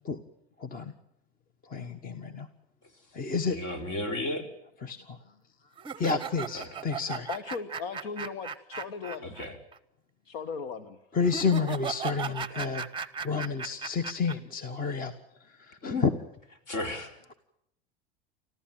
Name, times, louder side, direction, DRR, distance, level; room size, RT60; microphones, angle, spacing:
voice 1, 0.6-0.9 1.7-2.5 3.1-3.6 4.8-5.2 6.0-7.3 11.1-12.9 13.2-15.1 15.6-16.1, left 5 dB, 30° left, 12 dB, 1.4 m, -30 dB
voice 2, 3.5-4.4 6.5-6.7 9.2-9.6 15.9-16.1 16.7-17.1, left 2 dB, 55° left, 6 dB, 4.3 m, -33 dB
sound 1, 5.8-9.5 9.7-9.8 11.2-14.3, right 6 dB, 15° right, 0.9 m, -36 dB
voice 3, 7.3-9.3 10.2-11.0, left 5 dB, 70° left, 11 dB, 1.5 m, -37 dB
25.5 x 14.5 x 9.0 m, 0.78 s
hypercardioid pair, 100°, 31 cm